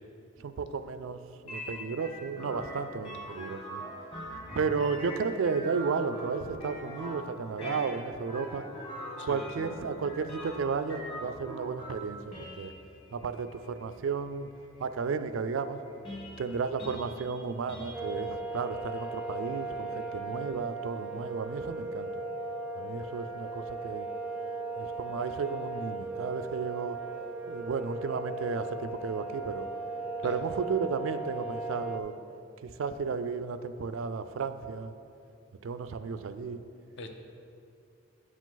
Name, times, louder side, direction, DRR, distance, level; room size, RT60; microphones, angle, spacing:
voice 1, 0.4-1.2 1.4-3.8 4.5-8.6 9.2-12.7 13.1-14.5 14.8-15.8 16.4-22.1 22.8-24.1 24.8-27.0 27.5-29.7 30.2-32.1 32.6-34.9 35.6-36.6, right 5 dB, 75° right, 11 dB, 0.4 m, -33 dB
sound 1, 1.5-20.2, equal, 25° left, 1.3 m, -44 dB
voice 2, 9.2-9.7 30.2-30.4 37.0-37.1, left 2 dB, 60° left, 5 dB, 0.7 m, -44 dB
sound 2, 17.9-32.0, right 3 dB, 5° right, 0.5 m, -37 dB
9.7 x 4.9 x 3.9 m, 2.5 s
head